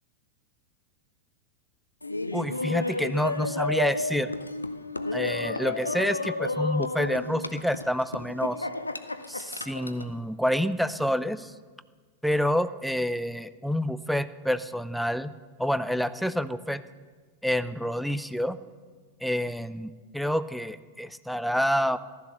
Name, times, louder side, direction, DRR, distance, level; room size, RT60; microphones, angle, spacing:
Laughter, 2.0-10.1, left 2 dB, 80° left, 0.7 m, -32 dB
voice 1, 2.3-4.3 5.1-8.7 9.3-11.5 12.2-15.3 15.6-16.8 17.4-18.6 19.2-22.0, equal, ahead, 14 dB, 0.6 m, -28 dB
14.5 x 12.5 x 6.7 m, 1.5 s
figure-of-eight pair, 90°, 0 cm